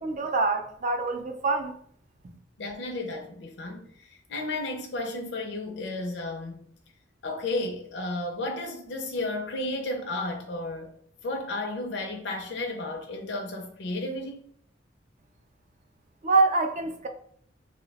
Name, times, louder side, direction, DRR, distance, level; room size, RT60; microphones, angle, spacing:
voice 1, 0.0-1.7 16.2-17.1, right 3 dB, 40° right, 0.4 m, -25 dB
voice 2, 2.6-6.6 7.2-10.9 11.2-14.4, left 2 dB, 65° left, 0.5 m, -33 dB
2.7 x 2.1 x 3.9 m
head